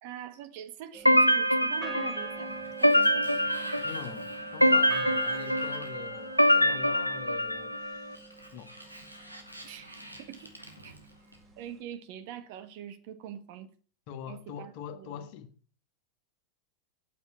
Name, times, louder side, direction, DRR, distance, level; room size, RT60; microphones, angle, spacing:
voice 1, 0.0-3.2 9.6-10.5 10.8-10.9 11.6-13.7 14.3-15.2, right 10 dB, 50° right, 1.5 m, -44 dB
sound 1, 0.9-9.4, right 5 dB, 15° right, 2.3 m, -44 dB
sound 2, 1.1-8.0, equal, 90° left, 0.7 m, -25 dB
Sliding door, 2.2-6.8 8.0-11.7, right 1 dB, 90° right, 2.2 m, -49 dB
voice 2, 3.8-8.2 8.5-8.7 14.1-15.5, left 9 dB, 45° left, 1.5 m, -43 dB
9.2 x 7.2 x 8.7 m
figure-of-eight pair, 90°, 0 cm